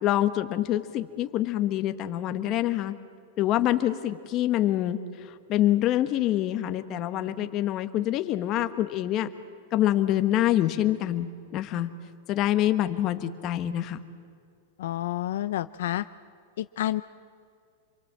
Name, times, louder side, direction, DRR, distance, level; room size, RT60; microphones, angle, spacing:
voice 1, 0.0-2.9 3.4-9.3 9.7-11.9 12.3-14.0, left 13 dB, 35° left, 9 dB, 1.4 m, -26 dB
voice 2, 14.8-16.0 16.6-17.0, left 13 dB, 75° left, 12 dB, 0.6 m, -29 dB
27.0 x 23.5 x 7.6 m, 2.3 s
supercardioid pair, 155°, 0 cm